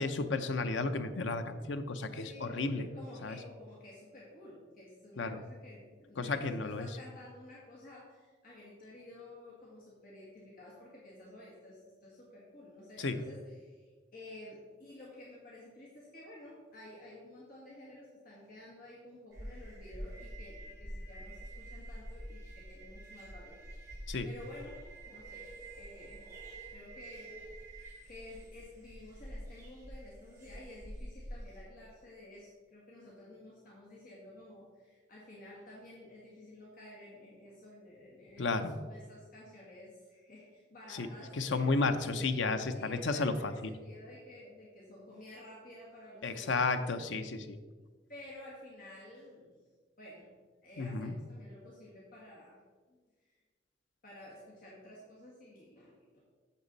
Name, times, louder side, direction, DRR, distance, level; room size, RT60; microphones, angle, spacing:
voice 1, 0.0-2.9 3.2-3.4 5.2-5.4 6.2-6.9 13.0-13.2 24.1-24.3 38.4-38.7 40.9-41.1 41.3-43.7 46.2-47.6 50.8-51.1, left 3 dB, 85° left, 9 dB, 0.7 m, -33 dB
voice 2, 2.2-26.3 26.7-27.6 28.1-42.3 42.7-46.7 48.1-49.6 50.0-50.3 50.6-52.6 52.9-53.0 53.3-53.4 54.0-56.2, left 1 dB, 50° left, -5 dB, 1.8 m, -52 dB
sound 1, 19.3-31.6, right 1 dB, 15° right, 2.7 m, -47 dB
8.4 x 7.2 x 4.0 m, 1.4 s
head